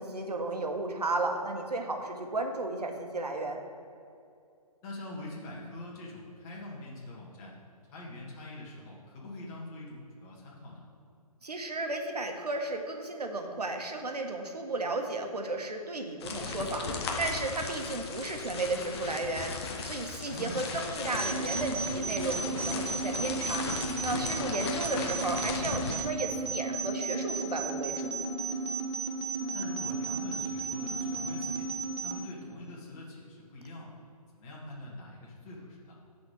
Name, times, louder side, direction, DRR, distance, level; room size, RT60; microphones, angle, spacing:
voice 1, 0.0-3.6 11.4-16.9 17.2-19.5 19.8-23.7 24.0-28.1, right 2 dB, 80° right, 3 dB, 1.3 m, -34 dB
voice 2, 4.8-7.5 7.9-10.9 20.3-20.7 24.6-24.7 26.4-26.5 29.5-31.7 32.0-33.9 34.3-36.0, left 1 dB, 25° left, -4 dB, 2.1 m, -44 dB
sound 1, 16.2-26.0, left 4 dB, 40° left, 1.0 m, -37 dB
sound 2, 21.2-32.2, right 3 dB, 45° right, 1.7 m, -34 dB
9.3 x 4.3 x 6.7 m, 2.4 s
figure-of-eight pair, 140°, 20 cm